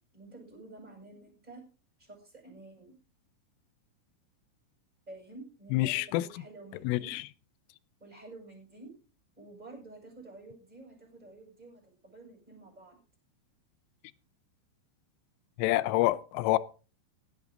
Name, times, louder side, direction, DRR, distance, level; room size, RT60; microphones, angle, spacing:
voice 1, 0.1-1.6 2.0-2.9 5.1-7.2 8.0-8.9 9.4-13.0, right 2 dB, 10° right, 7.8 m, -50 dB
voice 2, 5.7-6.3 6.8-7.2 15.6-16.6, left 17 dB, 90° left, 3.3 m, -27 dB
17.0 x 11.0 x 3.9 m
omnidirectional pair, 5.7 m